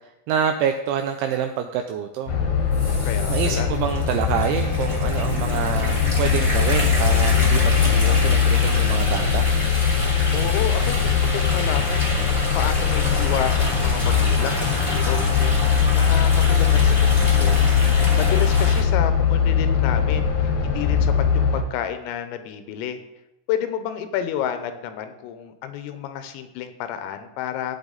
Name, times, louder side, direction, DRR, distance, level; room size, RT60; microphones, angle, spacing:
voice 1, 0.3-2.4 3.3-9.5, right 8 dB, 90° right, 5 dB, 2.6 m, -26 dB
sound 1, 2.3-21.6, left 7 dB, 70° left, 2.3 m, -20 dB
voice 2, 2.7-3.7 10.3-15.7 15.9-23.0 23.5-27.8, left 9 dB, 85° left, 9 dB, 3.4 m, -30 dB
sound 2, 2.7-18.8, left 1 dB, 20° left, 1.4 m, -29 dB
13.5 x 8.9 x 4.0 m, 0.93 s
omnidirectional pair, 6.0 m